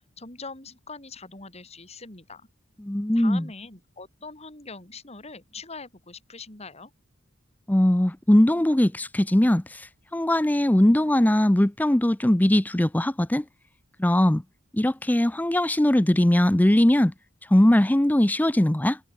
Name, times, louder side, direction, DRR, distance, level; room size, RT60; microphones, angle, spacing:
voice 1, 0.2-2.5 3.1-6.9, left 4 dB, 30° left, 5.0 m, -42 dB
voice 2, 2.8-3.5 7.7-9.6 10.1-13.4 14.0-14.4 14.7-17.1 17.5-19.0, left 1 dB, 10° left, 0.5 m, -20 dB
head